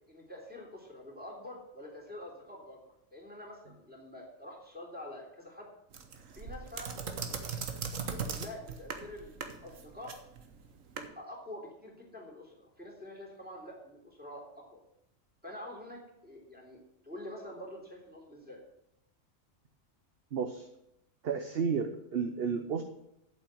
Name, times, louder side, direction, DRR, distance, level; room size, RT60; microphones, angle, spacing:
voice 1, 0.1-2.8 3.1-5.7 6.3-7.0 7.3-7.4 8.0-10.1 10.9-14.8 15.4-18.6, left 1 dB, 5° right, -2 dB, 3.2 m, -47 dB
sound 1, 5.9-11.1, right 5 dB, 70° right, 1.5 m, -39 dB
voice 2, 20.3-20.7 21.2-22.8, right 6 dB, 50° right, 6 dB, 1.0 m, -32 dB
8.6 x 7.8 x 7.9 m, 0.80 s
omnidirectional pair, 1.4 m